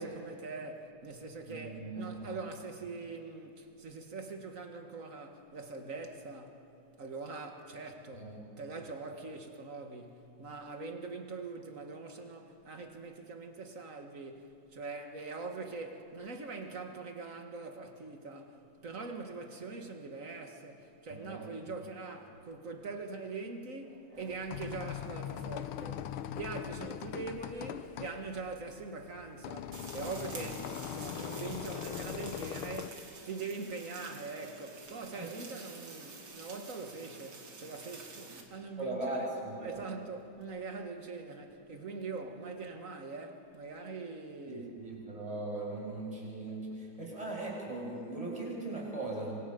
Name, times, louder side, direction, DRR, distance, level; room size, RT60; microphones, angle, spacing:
voice 1, 0.0-6.6 7.0-39.3 39.6-44.8, right 4 dB, 40° right, 2.0 m, -43 dB
voice 2, 1.5-2.3 8.1-8.3 21.3-21.7 30.3-30.5 35.2-35.3 38.8-39.8 44.5-49.4, right 2 dB, 15° right, 5.9 m, -39 dB
sound 1, 24.2-32.9, left 10 dB, 75° left, 1.6 m, -41 dB
sound 2, 29.7-38.4, right 4 dB, 65° right, 2.9 m, -49 dB
26.0 x 25.5 x 5.3 m
omnidirectional pair, 2.4 m